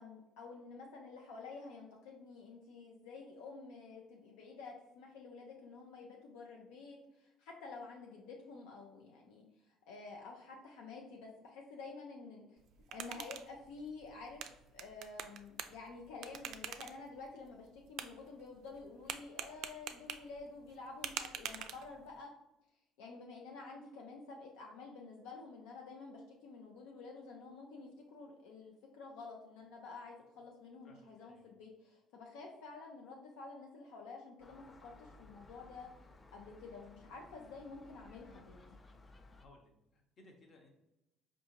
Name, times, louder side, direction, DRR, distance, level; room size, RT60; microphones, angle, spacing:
voice 1, 0.0-12.6 12.9-14.4 14.7-22.3 23.0-35.9 36.3-38.8, left 4 dB, 80° left, 0 dB, 0.5 m, -50 dB
sound 1, 12.6-22.2, right 9 dB, 65° right, 0.3 m, -47 dB
voice 2, 30.8-31.5 39.4-40.7, left 2 dB, 50° left, 3 dB, 0.9 m, -62 dB
Gull seagull, 34.4-39.4, left 2 dB, 25° left, 0.4 m, -59 dB
4.5 x 2.6 x 2.8 m, 0.93 s
supercardioid pair, 75°, 0 cm